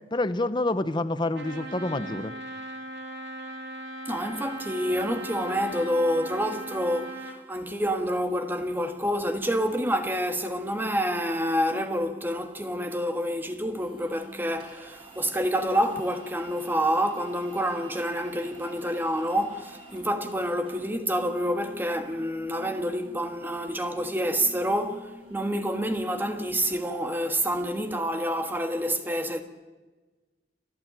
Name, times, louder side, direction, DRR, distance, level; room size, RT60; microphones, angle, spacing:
voice 1, 0.1-2.3, left 2 dB, 25° left, 0.8 m, -27 dB
Trumpet, 1.3-7.4, right 1 dB, 85° right, 3.3 m, -38 dB
voice 2, 4.0-29.4, equal, 10° right, 1.5 m, -28 dB
sound 1, 13.8-26.8, right 1 dB, 30° right, 6.1 m, -49 dB
30.0 x 12.0 x 9.1 m
head